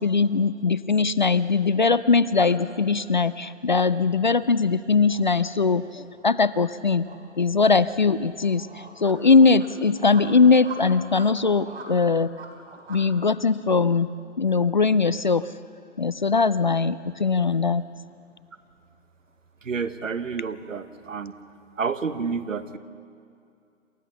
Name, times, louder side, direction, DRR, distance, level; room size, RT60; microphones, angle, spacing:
voice 1, 0.0-7.1 7.4-8.7 9.0-12.3 12.9-14.1 14.4-15.4 16.0-17.8, left 4 dB, 40° left, 15 dB, 0.4 m, -20 dB
sound 1, 2.2-13.0, right 3 dB, 55° right, 3.8 m, -45 dB
voice 2, 19.6-21.3 21.8-22.8, right 5 dB, 85° right, 12 dB, 1.3 m, -29 dB
28.0 x 14.0 x 6.9 m, 2.5 s
hypercardioid pair, 155°, 38 cm